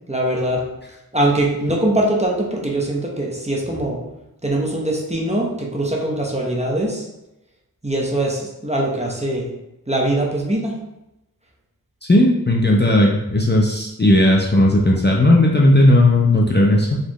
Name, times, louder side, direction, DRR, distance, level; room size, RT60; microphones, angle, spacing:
voice 1, 0.1-0.6 1.1-4.0 4.4-7.1 7.8-9.5 9.9-10.7, right 1 dB, 20° right, -2 dB, 0.8 m, -22 dB
voice 2, 12.1-17.0, left 1 dB, 30° left, -3 dB, 0.5 m, -15 dB
4.2 x 3.0 x 3.0 m, 0.92 s
wide cardioid pair, 45°, 37 cm